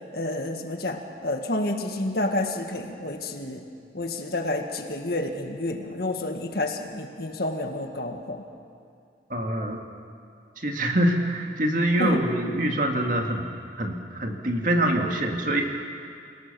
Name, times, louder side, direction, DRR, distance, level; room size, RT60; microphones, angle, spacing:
voice 1, 0.1-3.6 3.9-8.4 12.0-12.2, left 1 dB, 55° left, 4 dB, 1.9 m, -29 dB
voice 2, 9.3-9.8 10.6-13.4 13.8-15.6, right 1 dB, 45° right, 2 dB, 2.2 m, -25 dB
28.5 x 17.5 x 7.0 m, 2.4 s
head